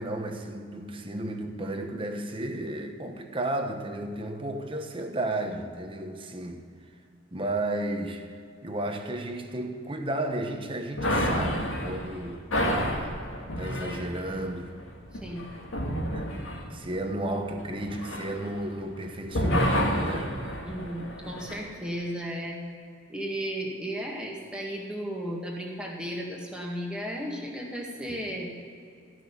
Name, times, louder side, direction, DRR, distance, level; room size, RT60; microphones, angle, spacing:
voice 1, 0.0-6.6 7.3-8.3 8.6-13.2 13.6-14.8 16.1-20.3, right 1 dB, 25° right, 5 dB, 1.1 m, -33 dB
sound 1, 11.0-19.0 19.3-21.6, equal, 90° left, 1.9 m, -30 dB
voice 2, 15.2-15.5 20.6-22.6 23.1-28.5, equal, 5° right, -2 dB, 1.9 m, -34 dB
14.5 x 6.3 x 9.9 m, 2.3 s
head